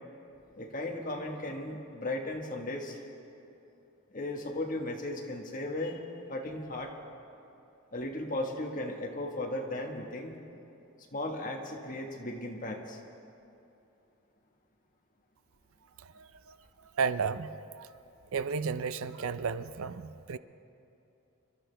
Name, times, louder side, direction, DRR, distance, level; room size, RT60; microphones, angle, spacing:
voice 1, 0.6-3.0 4.1-6.0 6.3-6.9 7.9-10.3 11.1-13.0, left 1 dB, 40° left, 1 dB, 1.4 m, -36 dB
voice 2, 16.2-16.6 17.0-17.5 17.8-17.9 18.3-20.4, right 5 dB, 75° right, 13 dB, 0.5 m, -33 dB
28.0 x 12.5 x 3.4 m, 2.8 s
head